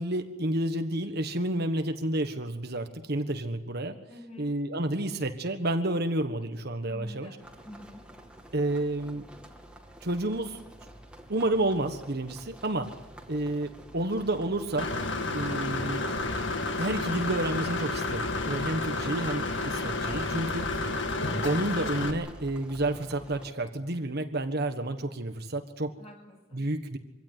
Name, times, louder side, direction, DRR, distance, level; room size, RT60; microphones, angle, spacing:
voice 1, 0.0-4.0 4.4-7.4 8.5-9.2 10.0-10.6 11.3-12.9 13.3-14.9 15.3-16.1 16.8-20.7 21.4-25.9 26.5-27.0, right 1 dB, 50° right, 7 dB, 1.4 m, -30 dB
voice 2, 4.1-4.5 6.7-8.1 26.0-26.7, equal, 30° left, 1 dB, 7.4 m, -48 dB
sound 1, 7.4-23.5, right 1 dB, 5° right, 2.4 m, -49 dB
sound 2, 9.1-19.4, left 2 dB, 90° left, 6.2 m, -53 dB
Engine / Mechanisms, 14.8-22.1, left 2 dB, 60° left, 2.0 m, -31 dB
24.5 x 17.0 x 9.7 m, 1.1 s
head